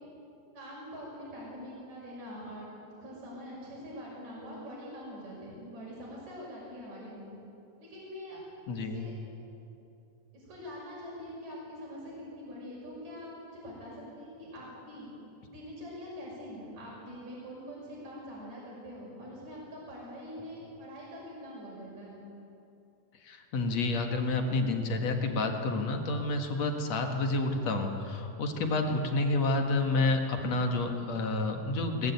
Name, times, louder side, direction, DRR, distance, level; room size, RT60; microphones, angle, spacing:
voice 1, 0.5-7.3 7.8-8.4 8.7-9.1 10.3-15.1 15.5-22.2, equal, 55° right, -6 dB, 7.4 m, -44 dB
voice 2, 8.7-9.1 23.2-32.1, left 2 dB, 55° left, 4 dB, 2.6 m, -29 dB
22.0 x 19.5 x 9.4 m, 2.8 s
omnidirectional pair, 4.0 m